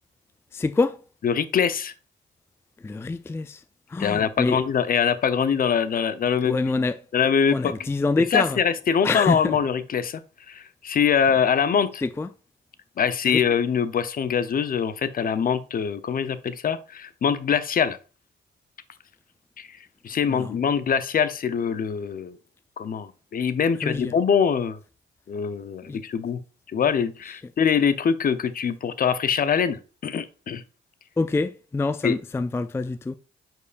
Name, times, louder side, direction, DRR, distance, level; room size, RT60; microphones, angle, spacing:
voice 1, 0.5-1.0 2.8-3.6 3.9-4.6 6.4-7.0 7.5-8.6 9.0-9.6 12.0-12.3 13.3-13.4 20.3-20.6 23.8-24.1 25.9-26.0 27.2-27.3 31.2-33.1, left 3 dB, 10° left, 0.4 m, -26 dB
voice 2, 1.2-1.9 4.0-6.6 7.1-7.7 8.3-10.2 10.5-12.0 13.0-18.0 19.6-19.8 20.0-22.4 22.8-24.8 25.3-26.4 26.7-30.6 32.0-32.2, left 7 dB, 45° left, 0.7 m, -23 dB
8.3 x 4.5 x 2.5 m
cardioid pair, 90°, 20 cm